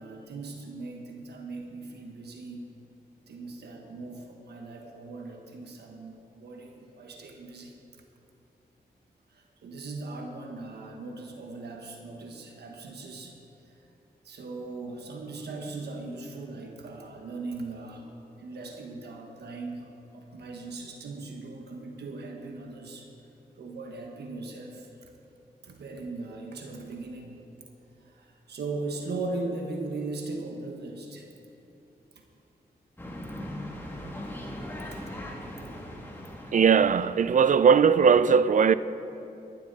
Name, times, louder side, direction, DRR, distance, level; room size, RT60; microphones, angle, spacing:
voice 1, 0.0-2.6 3.3-7.8 9.3-13.4 13.6-13.9 14.2-18.1 18.4-23.1 23.6-25.1 25.6-27.4 28.0-31.3 32.1-32.2 34.9-35.1 35.7-35.8, right 3 dB, 85° right, 1.3 m, -39 dB
sound 1, 33.0-37.8, left 1 dB, 15° left, 2.4 m, -40 dB
voice 2, 36.5-38.7, right 6 dB, 50° right, 0.4 m, -19 dB
17.5 x 11.5 x 4.1 m
cardioid pair, 75°, 17 cm